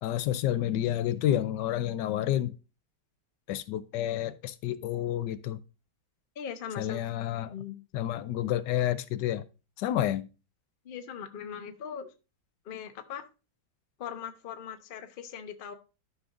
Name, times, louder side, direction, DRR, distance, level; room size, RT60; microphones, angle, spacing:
voice 1, 0.0-2.5 3.5-5.6 6.8-7.5 7.9-9.4 9.8-10.3, left 12 dB, 80° left, 1.2 m, -29 dB
voice 2, 6.4-7.0 7.4-7.8 10.8-12.1 12.6-13.2 14.0-15.7, left 8 dB, 45° left, 0.8 m, -40 dB
12.5 x 5.4 x 2.5 m
omnidirectional pair, 1.9 m